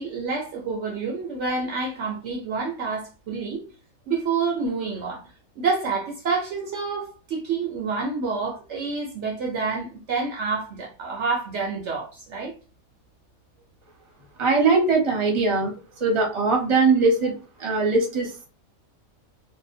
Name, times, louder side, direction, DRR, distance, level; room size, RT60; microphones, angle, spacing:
voice 1, 0.0-3.6 4.1-5.2 5.6-12.5, right 4 dB, 65° right, 0.8 m, -28 dB
voice 2, 14.4-15.7 16.0-17.3 17.6-18.5, right 3 dB, 25° right, 0.7 m, -21 dB
2.7 x 2.1 x 2.5 m
omnidirectional pair, 1.4 m